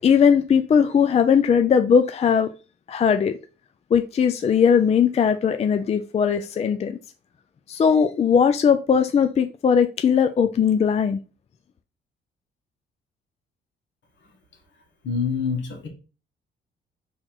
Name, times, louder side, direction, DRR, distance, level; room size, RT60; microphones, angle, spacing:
voice 1, 0.0-2.5 2.9-3.4 3.9-7.0 7.7-11.2, left 7 dB, 30° left, 0.4 m, -19 dB
voice 2, 15.0-15.9, left 6 dB, 70° left, 1.5 m, -26 dB
4.2 x 3.0 x 3.9 m
cardioid pair, 90°, 20 cm